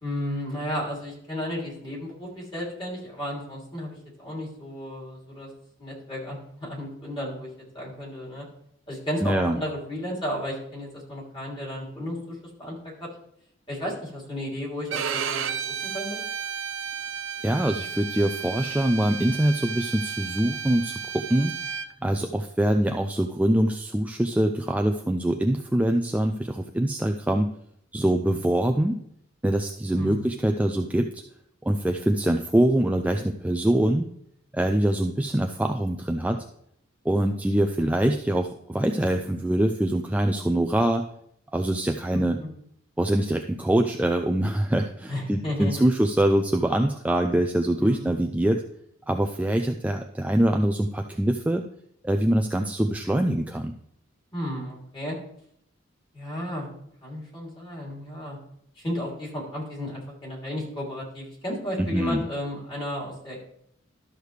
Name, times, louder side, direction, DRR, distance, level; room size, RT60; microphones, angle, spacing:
voice 1, 0.0-5.5 5.8-8.5 8.9-13.1 13.7-16.2 29.9-30.3 42.1-42.5 45.1-45.8 47.8-48.1 54.3-55.2 56.1-56.7 57.0-58.4 58.8-63.4, left 1 dB, 25° left, -4 dB, 3.0 m, -33 dB
voice 2, 9.2-9.6 17.4-21.5 22.0-27.5 27.9-29.0 29.4-31.2 31.6-34.1 34.5-36.4 37.1-41.0 41.5-42.4 43.0-48.6 49.1-51.7 52.0-53.7 61.8-62.2, right 1 dB, 5° right, 4 dB, 0.3 m, -24 dB
Bowed string instrument, 14.9-21.9, right 7 dB, 70° right, 0.6 m, -33 dB
12.5 x 6.5 x 3.3 m, 0.71 s
head